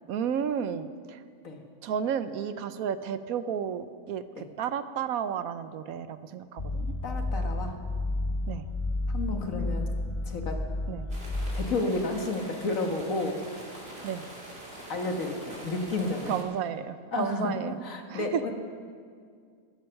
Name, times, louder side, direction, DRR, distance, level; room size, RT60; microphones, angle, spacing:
voice 1, 0.1-1.2 1.8-6.9 8.5-8.6 9.6-9.8 10.9-11.1 14.0-14.2 16.3-17.8 18.1-18.4, right 8 dB, 75° right, 12 dB, 1.1 m, -32 dB
sound 1, 6.6-11.7, left 2 dB, 35° left, 0.5 m, -31 dB
voice 2, 7.0-7.7 9.1-9.9 10.3-10.6 11.5-13.3 14.9-16.4 17.1-17.5 17.8-18.5, left 2 dB, 65° left, 3 dB, 1.9 m, -31 dB
sound 2, 11.1-16.4, right 1 dB, 40° right, 3.2 m, -44 dB
17.0 x 13.5 x 5.8 m, 2.1 s
omnidirectional pair, 1.5 m